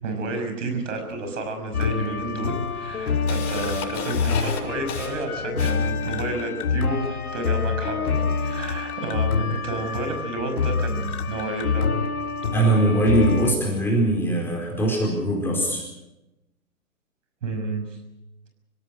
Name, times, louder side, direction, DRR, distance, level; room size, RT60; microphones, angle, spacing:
voice 1, 0.0-12.0 17.4-17.8, right 2 dB, 55° right, 6 dB, 6.0 m, -31 dB
Camera, 1.1-1.2 2.1-2.2 2.6-6.1, left 6 dB, 45° left, 6.5 m, -34 dB
sound 1, 1.7-13.5, left 5 dB, 85° left, 2.1 m, -26 dB
voice 2, 12.5-15.8, right 1 dB, 5° left, -1 dB, 4.6 m, -21 dB
26.0 x 17.0 x 6.6 m, 0.96 s
hypercardioid pair, 145°, 44 cm